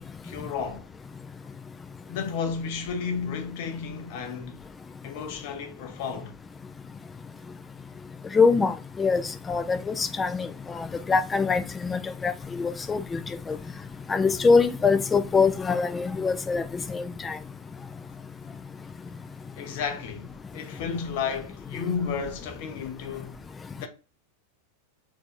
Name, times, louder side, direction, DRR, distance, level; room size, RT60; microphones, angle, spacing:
voice 1, 0.2-0.8 2.0-4.6 5.0-6.3 19.6-23.4 23.8-23.9, left 6 dB, 50° left, 0.6 m, -32 dB
voice 2, 8.3-9.2 9.5-10.5 10.8-13.2 13.5-13.6 14.1-17.4, left 4 dB, 15° left, 0.3 m, -24 dB
3.4 x 2.5 x 2.4 m
figure-of-eight pair, 90°, 0 cm